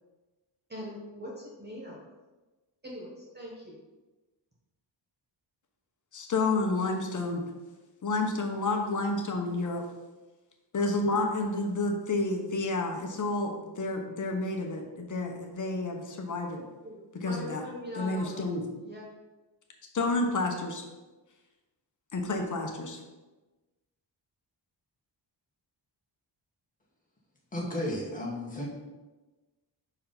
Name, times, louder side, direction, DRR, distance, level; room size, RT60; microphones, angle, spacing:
voice 1, 0.7-2.0 2.8-3.7 8.7-8.8 16.6-18.5 18.8-19.0, left 1 dB, 25° right, -3 dB, 1.0 m, -42 dB
voice 2, 6.1-7.4 8.0-9.9 10.7-16.6 17.2-17.6 17.9-18.6 19.9-20.8 22.1-23.0, left 2 dB, 45° left, 2 dB, 1.0 m, -30 dB
voice 3, 27.5-28.7, left 1 dB, 20° left, -3 dB, 1.6 m, -33 dB
5.4 x 4.7 x 5.8 m, 1.2 s
wide cardioid pair, 170°, 44 cm